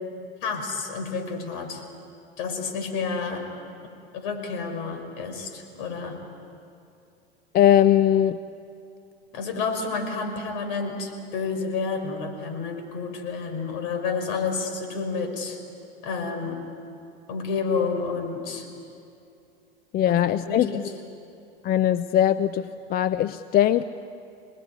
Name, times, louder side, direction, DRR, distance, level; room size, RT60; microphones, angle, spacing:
voice 1, 0.4-1.8 2.4-3.5 3.8-6.2 9.3-15.6 16.0-16.7 17.3-18.7 20.5-20.9, left 4 dB, 60° left, 4 dB, 5.3 m, -30 dB
voice 2, 7.5-8.4 19.9-20.7 21.6-23.8, left 11 dB, 30° left, 13 dB, 0.6 m, -20 dB
27.5 x 19.5 x 9.7 m, 2.6 s
hypercardioid pair, 95°, 30 cm